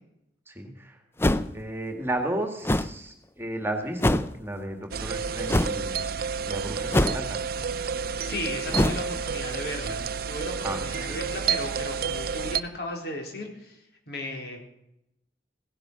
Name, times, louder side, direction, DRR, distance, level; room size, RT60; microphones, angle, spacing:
voice 1, 0.5-1.0 1.5-6.1 6.4-7.4 10.6-10.8, right 1 dB, 15° right, 4 dB, 2.0 m, -33 dB
sound 1, 1.2-1.6 2.6-3.0 4.0-4.3 5.5-5.8 6.9-7.4 8.7-9.1, left 1 dB, 15° left, 0.5 m, -23 dB
sound 2, 4.9-12.6, right 6 dB, 60° right, 0.7 m, -30 dB
voice 2, 8.2-13.8 14.1-14.6, left 1 dB, 65° left, 2 dB, 4.0 m, -35 dB
17.0 x 10.5 x 6.2 m, 0.82 s
head